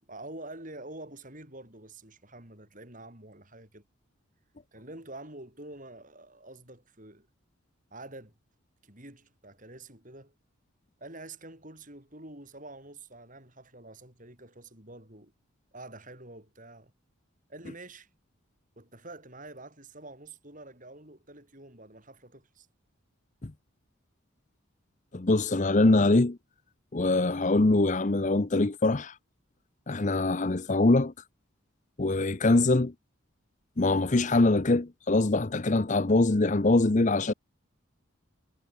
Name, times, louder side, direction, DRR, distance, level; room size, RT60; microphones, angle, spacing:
voice 1, 0.1-3.8 4.7-7.3 7.9-8.3 8.8-10.3 11.0-15.3 15.7-16.9 17.5-18.1 18.8-22.7 32.5-32.7, right 2 dB, 40° right, 7.7 m, -47 dB
voice 2, 25.1-26.4 26.9-29.1 29.9-31.1 32.0-32.9 33.8-37.3, left 2 dB, 35° left, 0.7 m, -23 dB
head